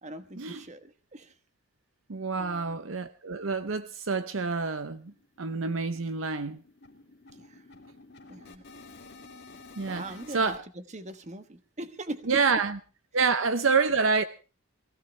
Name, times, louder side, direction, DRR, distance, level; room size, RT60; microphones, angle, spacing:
voice 1, 0.0-1.3 2.3-2.8 7.3-7.6 8.3-8.6 9.9-12.4, right 1 dB, 35° right, 1.2 m, -41 dB
voice 2, 2.1-5.1 5.4-6.6 9.8-10.0 10.3-10.6 12.3-12.8 13.1-14.2, right 4 dB, 70° right, 0.8 m, -27 dB
sound 1, 3.3-3.4 3.7-3.8 4.2-4.4 4.6-10.6, left 3 dB, 55° left, 2.4 m, -51 dB
22.5 x 16.0 x 3.3 m
head